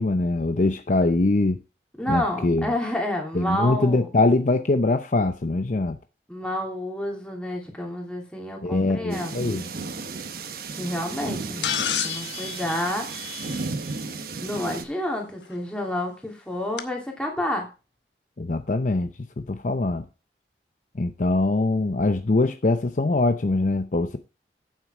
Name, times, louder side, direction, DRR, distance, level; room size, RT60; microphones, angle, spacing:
voice 1, 0.0-1.6 2.1-2.7 3.3-6.0 8.6-9.6 18.4-20.1 20.9-24.2, left 2 dB, 45° left, 0.6 m, -23 dB
voice 2, 2.0-4.1 6.3-9.5 10.7-13.2 14.4-17.7, left 1 dB, 5° left, 2.9 m, -29 dB
sound 1, 9.1-14.9, right 4 dB, 55° right, 1.2 m, -34 dB
sound 2, 11.6-13.9 15.5-15.6 16.8-16.9, left 9 dB, 85° left, 1.1 m, -30 dB
9.2 x 7.5 x 4.8 m
head